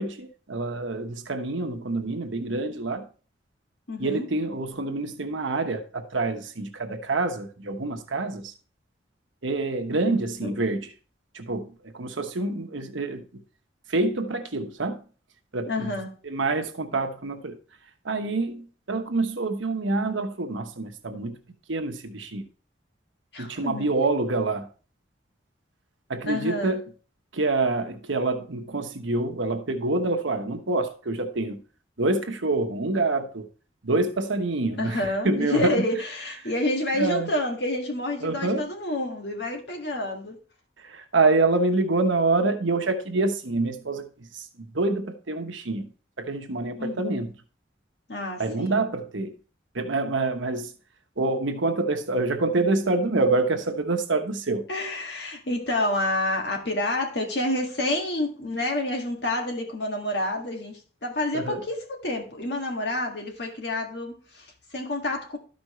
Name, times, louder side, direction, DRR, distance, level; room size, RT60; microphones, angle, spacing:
voice 1, 0.0-3.1 4.0-8.5 9.4-10.9 11.3-13.2 13.9-15.0 15.5-15.9 16.2-17.6 18.0-21.4 21.7-22.5 23.4-24.7 26.1-26.8 27.3-31.6 32.0-33.5 33.8-35.8 37.0-37.3 38.2-38.7 40.8-45.9 46.2-47.3 48.4-49.3 49.7-50.7 51.2-54.6 61.3-61.6, right 3 dB, 85° right, 1.1 m, -26 dB
voice 2, 3.9-4.3 10.4-10.5 15.7-16.1 23.3-23.9 26.3-26.8 34.8-40.4 46.8-47.1 48.1-48.9 54.7-65.4, left 1 dB, 60° left, 1.7 m, -29 dB
13.0 x 5.3 x 3.1 m
head